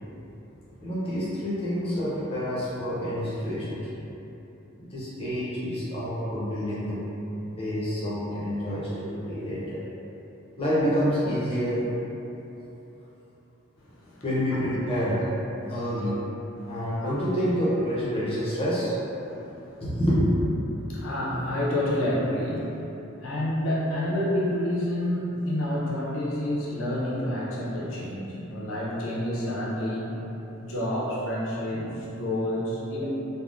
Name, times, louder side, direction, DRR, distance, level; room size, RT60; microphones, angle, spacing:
voice 1, 0.8-3.9 4.8-7.0 7.4-9.8 10.6-11.9 14.2-15.3 15.7-16.2 16.7-19.0 19.8-20.4, equal, 25° left, -9 dB, 0.6 m, -27 dB
voice 2, 13.8-14.2 15.6-15.7 16.6-17.1 19.2-19.8 20.8-22.8 23.2-30.1 30.6-33.0, left 1 dB, 65° left, -5 dB, 0.6 m, -29 dB
3.3 x 2.1 x 2.5 m, 3.0 s
head